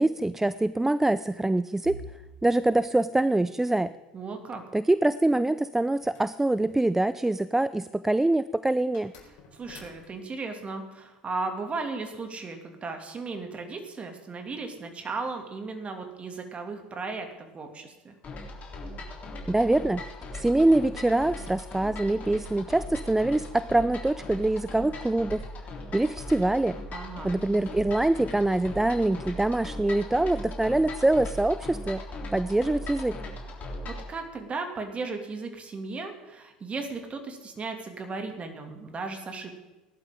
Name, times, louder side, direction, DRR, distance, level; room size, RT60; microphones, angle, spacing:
voice 1, 0.0-2.0 2.4-3.9 4.7-9.1 19.5-20.0 20.3-25.4 25.9-26.8 27.2-32.0 32.3-33.2, right 2 dB, 10° right, 16 dB, 0.4 m, -24 dB
sound 1, 1.8-13.7 14.1-14.4 14.7-14.9 15.8-16.2, right 3 dB, 80° right, 2.4 m, -54 dB
voice 2, 4.1-4.6 9.5-18.1 26.9-27.3 33.9-39.6, right 3 dB, 30° right, 5 dB, 2.6 m, -36 dB
sound 2, 5.9-7.4 8.9-10.4, left 4 dB, 55° left, 4.6 m, -53 dB
sound 3, 18.2-34.1, left 1 dB, 35° left, 3.6 m, -39 dB
18.5 x 11.5 x 3.8 m, 1.1 s
figure-of-eight pair, 70°, 4 cm